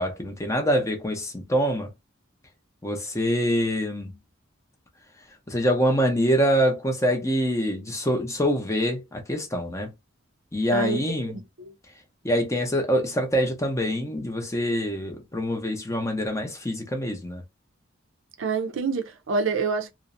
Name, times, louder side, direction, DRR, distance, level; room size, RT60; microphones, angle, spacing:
voice 1, 0.0-1.9 2.8-4.1 5.5-9.9 10.5-11.4 12.2-17.4, equal, 15° left, 0.5 m, -25 dB
voice 2, 10.7-11.7 18.4-19.9, right 4 dB, 65° right, 0.5 m, -27 dB
2.5 x 2.0 x 2.5 m
head